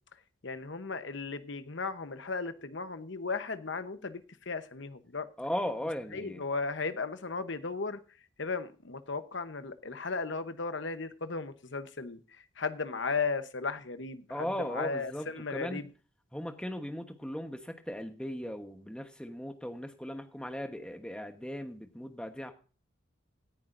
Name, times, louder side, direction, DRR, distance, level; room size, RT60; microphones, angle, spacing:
voice 1, 0.4-5.3 6.1-8.0 8.4-15.8, left 4 dB, 60° left, 1.0 m, -36 dB
voice 2, 5.4-6.4 14.3-15.9 16.3-22.5, equal, 5° left, 1.1 m, -37 dB
17.5 x 10.5 x 2.6 m
head